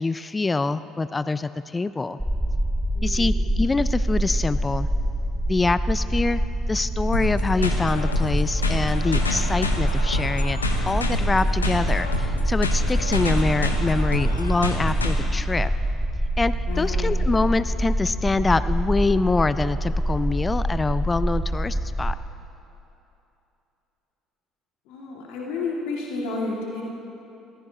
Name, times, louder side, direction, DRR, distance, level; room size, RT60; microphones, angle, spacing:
voice 1, 0.0-2.2 3.0-4.9 5.5-6.4 6.7-10.6 10.8-15.7 16.4-22.1, left 3 dB, 20° left, 14 dB, 0.4 m, -25 dB
sound 1, 2.2-22.1, right 1 dB, 5° right, 1.0 m, -25 dB
voice 2, 2.9-3.3 16.7-17.1 24.9-26.8, left 3 dB, 65° left, -2 dB, 2.0 m, -31 dB
sound 2, 7.1-15.1, left 2 dB, 85° left, 0.8 m, -29 dB
20.5 x 15.5 x 2.8 m, 2.9 s
figure-of-eight pair, 55°, 0 cm